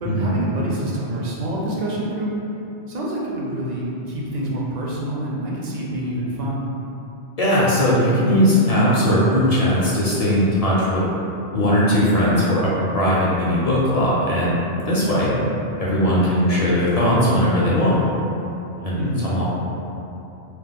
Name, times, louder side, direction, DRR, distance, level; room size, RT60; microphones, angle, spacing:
voice 1, 0.0-2.3 2.9-6.6 19.0-19.3, right 1 dB, 55° right, -4 dB, 0.5 m, -27 dB
voice 2, 7.4-11.0 11.5-15.3 15.8-17.9 18.8-19.4, equal, 45° left, -8 dB, 0.5 m, -19 dB
2.9 x 2.1 x 3.5 m, 2.9 s
omnidirectional pair, 1.1 m